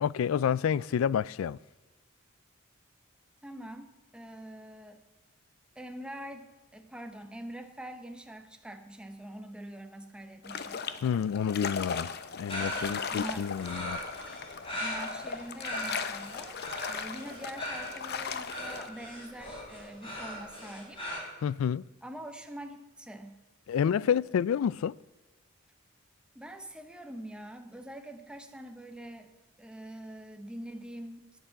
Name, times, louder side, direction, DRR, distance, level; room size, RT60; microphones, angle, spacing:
voice 1, 0.0-1.6 11.0-12.1 12.4-14.0 21.4-21.8 23.7-24.9, left 8 dB, 80° left, 0.3 m, -29 dB
voice 2, 3.4-5.0 5.7-10.8 12.5-13.5 14.8-16.6 16.9-21.0 22.0-23.4 23.8-24.1 26.3-29.3 29.6-31.4, right 1 dB, 5° right, 0.9 m, -44 dB
sound 1, 10.4-18.9, left 6 dB, 50° left, 0.7 m, -38 dB
sound 2, 12.5-21.2, equal, 25° left, 3.4 m, -39 dB
18.0 x 6.8 x 5.8 m
head